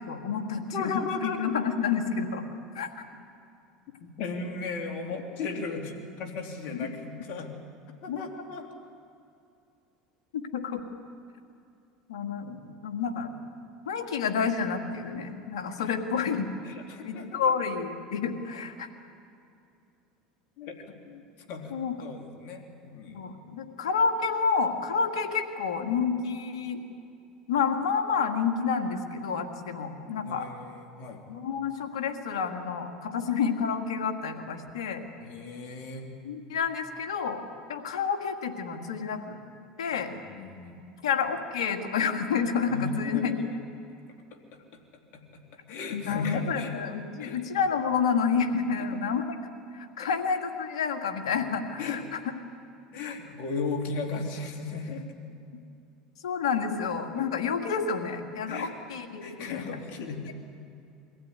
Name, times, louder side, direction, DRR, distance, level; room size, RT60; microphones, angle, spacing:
voice 1, 0.1-2.4 2.8-2.9 8.1-8.2 10.3-10.8 12.1-13.3 13.9-16.5 17.0-18.9 21.7-21.9 23.1-26.8 27.5-30.5 31.3-35.0 36.2-37.4 37.7-39.4 39.8-40.1 41.0-43.3 45.9-49.4 49.7-52.0 53.0-53.1 56.2-59.6, left 6 dB, 85° left, 5 dB, 1.9 m, -29 dB
voice 2, 0.7-1.5 4.0-7.5 8.0-8.7 15.8-15.9 16.6-17.5 20.6-21.2 21.5-21.7 22.0-23.2 30.2-31.2 35.2-36.1 40.1-40.8 42.7-43.4 44.5-44.6 45.1-45.4 45.7-46.7 47.2-47.4 48.9-49.0 50.0-50.1 51.8-52.0 52.9-55.1 57.1-57.3 58.5-58.7 59.2-60.3, left 4 dB, 60° left, 2 dB, 3.3 m, -36 dB
23.0 x 15.5 x 9.6 m, 2.6 s
hypercardioid pair, 90°, 3 cm